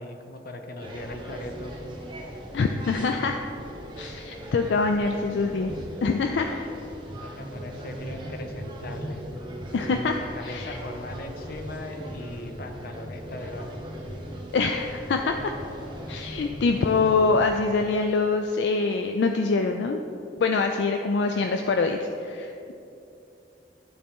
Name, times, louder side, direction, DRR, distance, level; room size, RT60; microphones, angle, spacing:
voice 1, 0.0-1.8 7.2-9.2 10.2-13.8, left 2 dB, 60° left, 5 dB, 0.8 m, -39 dB
sound 1, 0.8-17.5, right 1 dB, 30° right, 1.2 m, -38 dB
voice 2, 2.5-3.4 4.0-5.7 6.0-6.5 9.7-10.2 10.4-10.8 14.5-15.5 16.1-20.0 20.4-22.7, left 4 dB, 75° left, 5 dB, 0.4 m, -24 dB
12.0 x 4.3 x 3.6 m, 2.7 s
head